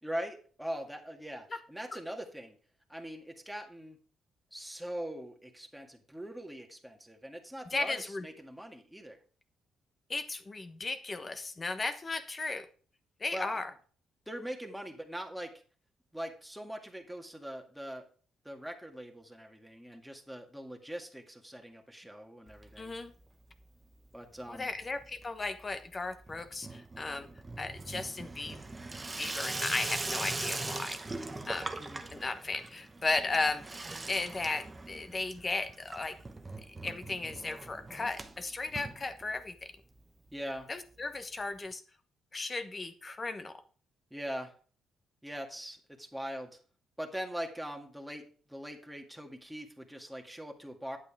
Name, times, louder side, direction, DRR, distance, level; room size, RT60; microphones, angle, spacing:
voice 1, 0.0-2.6 2.9-4.0 4.5-9.2 13.3-13.6 14.3-15.5 16.1-18.1 18.4-22.9 24.1-24.7 31.8-32.0 40.3-40.7 44.1-44.5 45.2-46.6 47.0-51.0, equal, 5° right, 2 dB, 1.9 m, -42 dB
voice 2, 7.7-8.2 10.1-12.7 13.2-13.7 22.8-23.1 24.5-27.3 27.6-28.6 29.2-31.7 32.1-33.6 34.1-36.2 36.8-39.7 40.7-41.8 42.3-43.5, left 3 dB, 30° left, 8 dB, 1.1 m, -35 dB
Water tap faucet / Sink (filling or washing), 22.5-23.3 23.5-24.1 24.4-39.6 40.0-40.1 40.3-40.4 40.6-40.7 41.7-41.8, right 2 dB, 20° right, 1.0 m, -41 dB
9.5 x 8.2 x 3.5 m, 0.41 s
cardioid pair, 90°, 0 cm